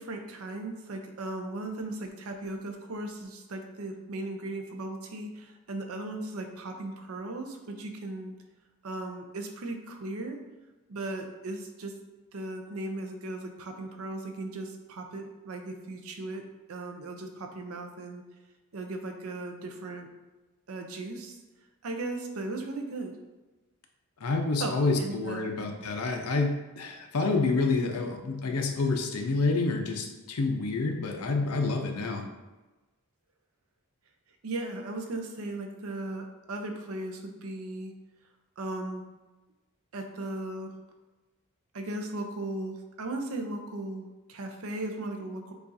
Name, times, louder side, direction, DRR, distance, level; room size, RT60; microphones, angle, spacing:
voice 1, 0.0-8.3 8.8-10.4 10.9-11.9 12.3-16.4 16.7-18.2 18.7-20.1 20.7-21.4 21.8-23.1 24.6-25.5 34.4-37.9 38.6-39.0 39.9-40.7 41.7-45.5, right 2 dB, 75° right, 4 dB, 0.6 m, -37 dB
voice 2, 24.2-32.3, left 3 dB, 85° left, 3 dB, 0.6 m, -28 dB
6.8 x 2.5 x 2.6 m, 1.1 s
head